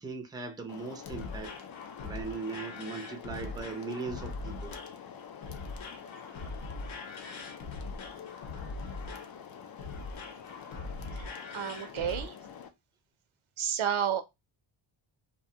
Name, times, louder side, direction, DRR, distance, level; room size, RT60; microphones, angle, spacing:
voice 1, 0.0-1.6 2.0-4.7, right 4 dB, 10° right, 0.5 m, -39 dB
sound 1, 0.7-12.7, left 7 dB, 50° left, 0.5 m, -47 dB
sound 2, 0.8-12.3, left 3 dB, 70° left, 0.8 m, -42 dB
voice 2, 11.5-12.4 13.6-14.2, right 9 dB, 75° right, 0.6 m, -31 dB
2.4 x 2.2 x 2.8 m
wide cardioid pair, 115°, 49 cm